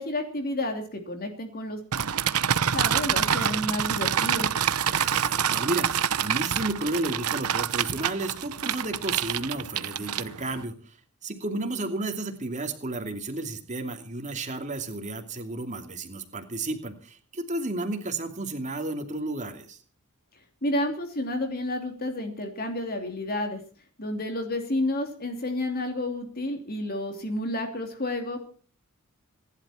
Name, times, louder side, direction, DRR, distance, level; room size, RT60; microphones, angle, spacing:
voice 1, 0.0-1.8 2.7-4.5 20.6-23.6 24.0-28.5, left 1 dB, 45° left, 5 dB, 3.0 m, -30 dB
sound 1, 1.9-10.6, right 8 dB, 80° right, 0.9 m, -27 dB
voice 2, 4.9-11.0 11.2-19.8, right 2 dB, 35° right, 6 dB, 2.7 m, -32 dB
26.0 x 11.5 x 4.4 m, 0.41 s
head